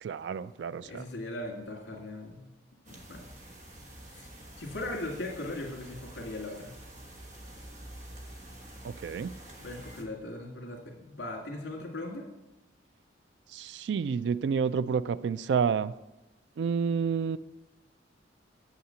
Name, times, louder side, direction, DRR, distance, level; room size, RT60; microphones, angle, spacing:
voice 1, 0.0-1.0 8.8-9.3 13.5-15.9 16.6-17.4, right 6 dB, 65° right, 17 dB, 0.3 m, -29 dB
voice 2, 0.8-2.4 2.9-3.3 4.1-4.3 4.6-6.7 9.6-12.3, left 2 dB, 65° left, 0 dB, 2.1 m, -39 dB
sound 1, 2.8-10.0, right 1 dB, 40° right, 1.2 m, -48 dB
7.5 x 5.7 x 7.6 m, 1.0 s
head